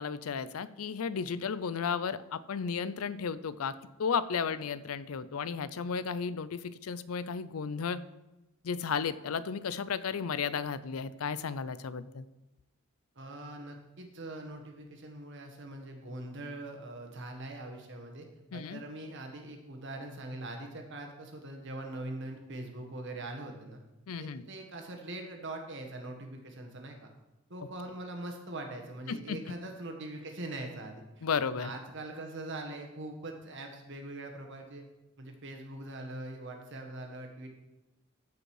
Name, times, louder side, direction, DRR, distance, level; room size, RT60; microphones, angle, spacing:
voice 1, 0.0-8.0 8.6-12.3 18.5-18.8 24.1-24.4 29.1-29.4 31.2-31.7, left 6 dB, 85° left, 16 dB, 0.5 m, -34 dB
voice 2, 13.1-18.3 18.5-23.8 24.2-27.1 27.5-34.8 35.2-37.5, right 2 dB, 60° right, 3 dB, 1.6 m, -42 dB
14.5 x 5.3 x 4.8 m, 1.0 s
head